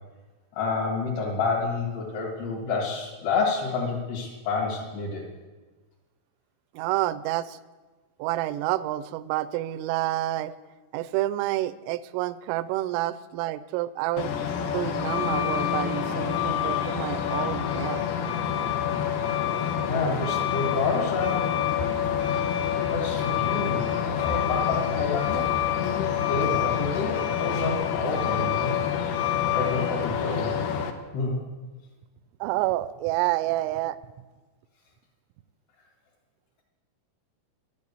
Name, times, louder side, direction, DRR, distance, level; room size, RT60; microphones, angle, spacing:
voice 1, 0.5-5.2 19.8-21.6 22.8-28.7 29.5-30.5 31.1-31.4, left 4 dB, 60° left, -5 dB, 3.6 m, -29 dB
voice 2, 6.8-7.6 8.2-10.5 10.9-18.0 32.4-34.0, right 15 dB, 85° right, 16 dB, 2.9 m, -29 dB
Truck, 14.2-30.9, left 9 dB, 75° left, 2.4 m, -27 dB
12.0 x 8.7 x 8.2 m, 1.2 s
omnidirectional pair, 5.8 m